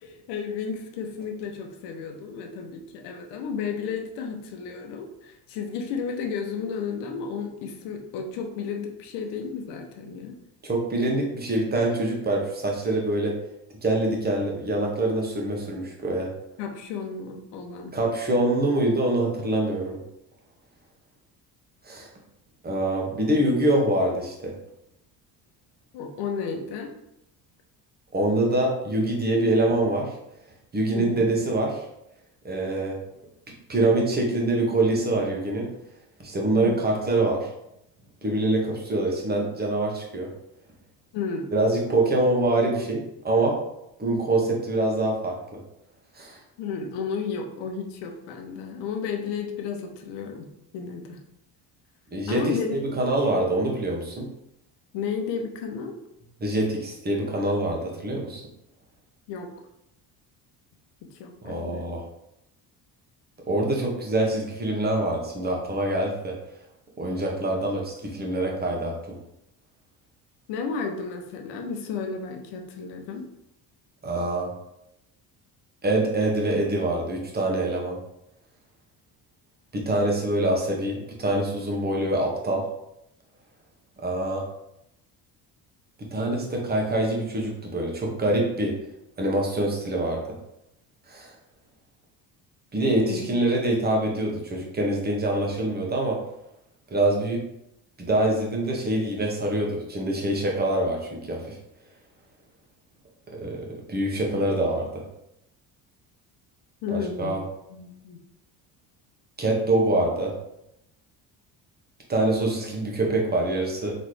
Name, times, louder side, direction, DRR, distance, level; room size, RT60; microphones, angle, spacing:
voice 1, 0.0-10.4 16.6-18.0 25.9-26.9 30.9-31.4 36.6-36.8 41.1-41.5 46.6-51.2 52.3-52.9 54.9-56.0 59.3-59.5 61.0-61.8 70.5-73.3 93.1-93.3 106.8-107.4 107.7-108.2, left 5 dB, 80° left, 4 dB, 0.9 m, -33 dB
voice 2, 10.6-13.3 13.8-16.3 17.9-20.0 21.8-22.1 22.6-24.5 28.1-30.1 30.7-31.8 32.4-33.0 33.7-35.7 36.2-37.5 38.2-40.3 41.5-43.6 44.0-45.4 46.1-46.4 52.1-52.5 53.0-54.2 56.4-58.4 61.4-62.0 63.5-66.4 67.0-68.9 74.0-74.5 75.8-78.0 79.7-82.6 84.0-84.4 86.0-88.7 89.2-90.2 91.1-91.3 92.7-96.2 96.9-97.4 98.0-101.6 103.3-105.0 106.9-107.4 109.4-110.3 112.1-113.9, right 1 dB, 25° right, -1 dB, 1.1 m, -25 dB
4.2 x 3.1 x 3.2 m, 0.81 s
cardioid pair, 115°, 41 cm